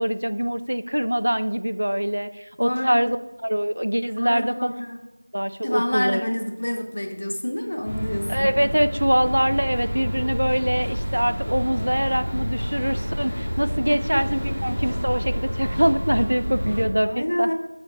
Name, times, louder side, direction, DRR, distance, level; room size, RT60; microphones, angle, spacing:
voice 1, 0.0-3.2 3.4-4.7 5.3-6.3 8.3-17.5, equal, 75° right, 13 dB, 0.4 m, -24 dB
voice 2, 2.6-3.1 4.2-5.0 5.6-8.5 13.9-14.2 17.0-17.5, left 1 dB, 35° left, 4 dB, 0.8 m, -28 dB
sound 1, 7.8-16.8, equal, ahead, 0.9 m, -28 dB
7.8 x 6.9 x 2.9 m, 1.0 s
figure-of-eight pair, 180°, 0 cm